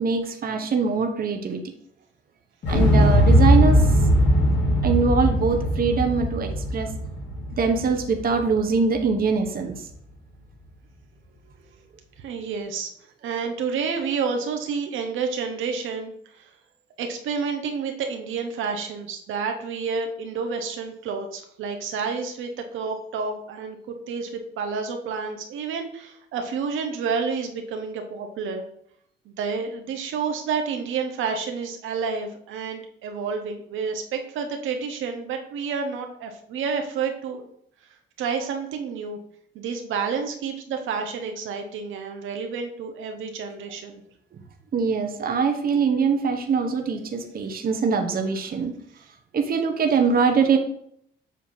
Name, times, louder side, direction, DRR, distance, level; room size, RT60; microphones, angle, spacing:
voice 1, 0.0-1.6 2.7-3.8 4.8-6.9 7.6-9.8 44.7-48.7 49.3-50.6, right 5 dB, 50° right, 5 dB, 0.9 m, -23 dB
Explosion, 2.6-8.7 9.0-9.1, equal, 60° left, 2.6 m, -20 dB
voice 2, 12.2-12.9 13.2-16.5 17.0-28.7 29.3-37.4 38.2-39.2 39.5-44.0, right 5 dB, 80° right, 4 dB, 1.0 m, -29 dB
7.4 x 2.8 x 5.6 m, 0.69 s
cardioid pair, 90°, 20 cm